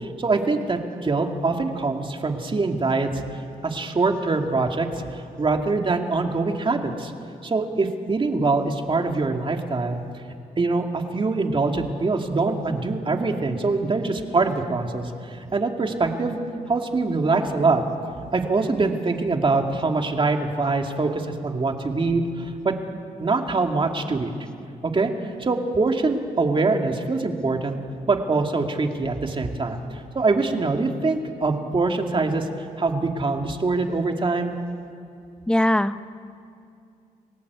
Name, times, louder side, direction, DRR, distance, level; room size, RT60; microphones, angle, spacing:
voice 1, 0.0-3.1 3.6-4.9 5.1-7.1 7.4-10.0 10.6-16.4 16.7-17.8 18.3-22.7 23.2-24.3 24.8-25.1 25.4-27.8 28.1-32.5 32.8-34.6, right 3 dB, 35° right, 3 dB, 2.4 m, -24 dB
voice 2, 35.5-36.1, left 1 dB, 5° left, 12 dB, 0.9 m, -21 dB
29.0 x 17.5 x 8.3 m, 2.4 s
cardioid pair, 80°, 15 cm